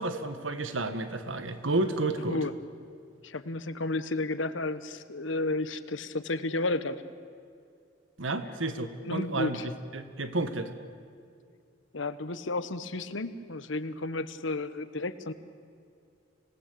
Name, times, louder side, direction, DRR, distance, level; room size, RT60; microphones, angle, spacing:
voice 1, 0.0-2.4 8.2-10.7, right 2 dB, 85° right, 10 dB, 1.6 m, -31 dB
voice 2, 3.2-7.0 9.0-9.7 11.9-15.3, left 2 dB, 75° left, 13 dB, 1.1 m, -32 dB
26.0 x 19.0 x 8.5 m, 2.4 s
head